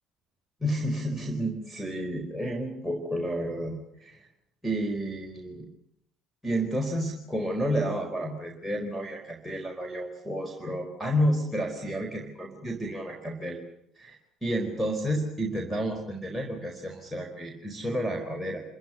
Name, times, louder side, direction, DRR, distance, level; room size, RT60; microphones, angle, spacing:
voice 1, 0.6-4.2 4.6-5.7 6.4-13.6 14.0-14.2 14.4-18.6, equal, ahead, 0 dB, 4.6 m, -31 dB
27.5 x 15.0 x 9.8 m, 0.74 s
figure-of-eight pair, 55°, 0 cm